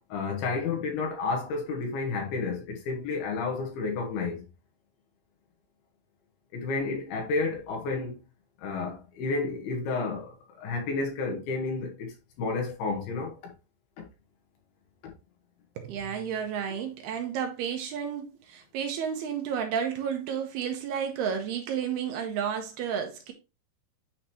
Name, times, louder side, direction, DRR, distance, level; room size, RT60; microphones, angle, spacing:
voice 1, 0.1-4.5 6.5-8.2 8.6-13.4, left 3 dB, 70° left, 3.2 m, -31 dB
voice 2, 15.8-23.3, right 8 dB, 75° right, 2.9 m, -31 dB
9.7 x 3.9 x 3.0 m
omnidirectional pair, 4.9 m